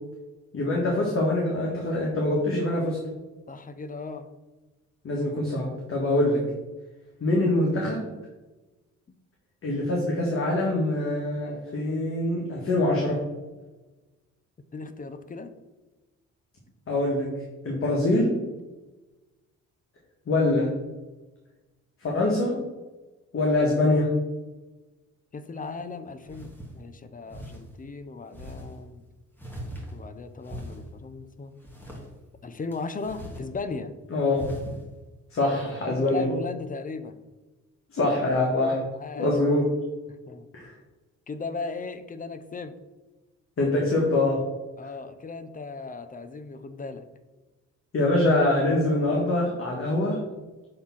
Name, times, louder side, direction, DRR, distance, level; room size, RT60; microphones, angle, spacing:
voice 1, 0.5-3.0 5.0-6.4 7.2-8.1 9.6-13.2 16.9-17.3 17.6-18.4 20.3-20.7 22.0-22.5 23.3-24.1 34.1-34.5 35.3-36.3 37.9-38.9 39.1-39.7 40.5-40.7 43.6-44.5 47.9-50.2, left 2 dB, 45° left, -2 dB, 1.6 m, -24 dB
voice 2, 3.5-4.3 14.7-15.5 25.3-29.0 29.9-31.6 32.4-33.9 35.9-37.2 39.0-39.3 40.3-40.5 41.3-42.7 44.8-47.1, left 4 dB, 25° left, 10 dB, 0.7 m, -37 dB
sound 1, 25.6-25.7 26.2-26.7 27.3-27.6 28.3-28.7 29.3-30.1 30.4-30.9 31.6-32.0 32.7-33.5 33.8-33.9 34.3-34.8, equal, 5° left, 1.8 m, -39 dB
6.7 x 3.6 x 5.8 m, 1.2 s
cardioid pair, 90°, 30 cm